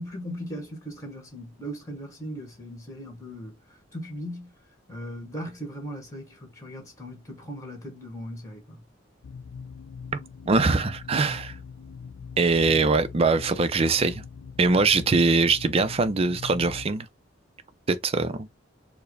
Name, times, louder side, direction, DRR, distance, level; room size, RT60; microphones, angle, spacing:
voice 1, 0.0-3.6 3.9-4.5 4.9-8.8, equal, 15° left, 1.6 m, -38 dB
sound 1, 9.2-16.9, left 6 dB, 70° left, 0.4 m, -42 dB
voice 2, 10.5-11.5 12.4-14.2 14.6-17.1 17.9-18.5, right 3 dB, 30° right, 0.4 m, -22 dB
4.6 x 2.1 x 3.2 m
head